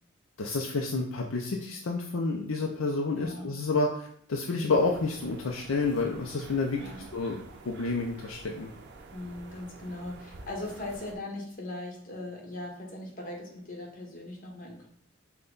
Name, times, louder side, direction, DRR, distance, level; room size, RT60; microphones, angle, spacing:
voice 1, 0.4-6.8 7.1-8.7, left 3 dB, 70° left, 1 dB, 0.5 m, -29 dB
voice 2, 3.2-3.5 6.7-7.1 9.1-14.9, left 2 dB, 45° left, -1 dB, 1.3 m, -39 dB
sound 1, 4.7-11.2, right 3 dB, 55° right, 0.5 m, -49 dB
5.6 x 2.3 x 3.9 m, 0.66 s
head